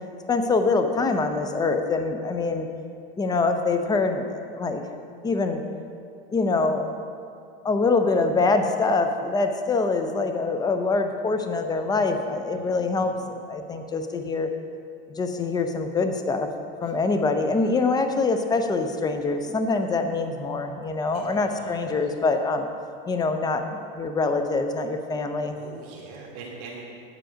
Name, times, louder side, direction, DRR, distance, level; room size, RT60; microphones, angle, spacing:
voice 1, 0.3-2.7 3.2-4.8 5.2-5.6 6.3-6.9 7.6-13.1 13.5-14.5 15.2-16.5 16.8-22.7 23.1-25.5, left 3 dB, 15° left, 7 dB, 0.6 m, -24 dB
voice 2, 12.5-13.2 21.1-21.9 25.5-26.8, right 4 dB, 55° right, -3 dB, 1.7 m, -43 dB
9.0 x 7.9 x 5.0 m, 2.4 s
supercardioid pair, 130°, 30 cm